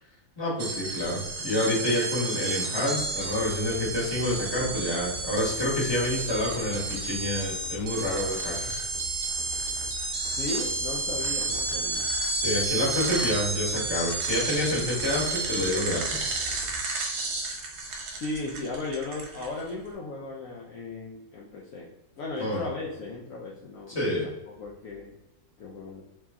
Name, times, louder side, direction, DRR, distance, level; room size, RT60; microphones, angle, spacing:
voice 1, 0.4-8.8 12.3-16.3 22.4-22.6 23.9-24.3, left 1 dB, 15° left, -5 dB, 1.2 m, -28 dB
sound 1, 0.6-19.7, right 3 dB, 65° right, 1.2 m, -31 dB
sound 2, 2.9-16.8, left 2 dB, 40° left, 0.9 m, -44 dB
voice 2, 10.3-12.1 18.1-21.9 22.2-24.0 24.6-25.2 25.6-26.0, left 3 dB, 70° left, -3 dB, 0.7 m, -36 dB
3.2 x 2.9 x 3.5 m, 0.94 s
omnidirectional pair, 2.1 m